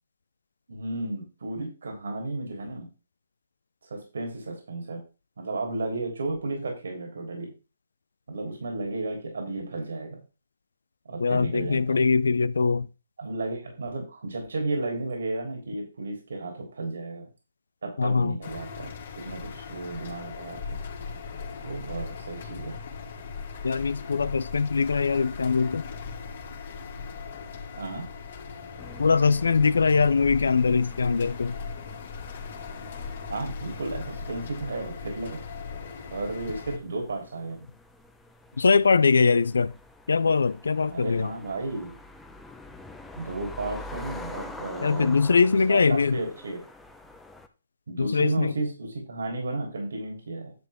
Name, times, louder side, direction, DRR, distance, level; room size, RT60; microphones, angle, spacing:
voice 1, 0.7-2.9 3.9-5.0 5.4-7.5 8.3-10.2 11.1-12.0 13.2-17.3 17.8-18.9 19.2-20.8 21.6-22.8 27.7-28.1 33.3-35.4 36.1-37.7 40.9-41.9 43.2-45.2 45.7-46.6 47.9-50.5, right 2 dB, 75° right, 3.6 m, -33 dB
voice 2, 11.2-12.9 18.0-18.4 23.6-25.9 29.0-31.6 38.6-39.7 40.1-41.3 44.8-46.2 48.0-48.5, left 4 dB, 80° left, 0.5 m, -22 dB
sound 1, 18.4-36.8, left 5 dB, 55° left, 2.6 m, -39 dB
sound 2, 28.8-47.5, left 2 dB, 5° left, 0.9 m, -46 dB
10.5 x 7.0 x 3.7 m
hypercardioid pair, 140°, 0 cm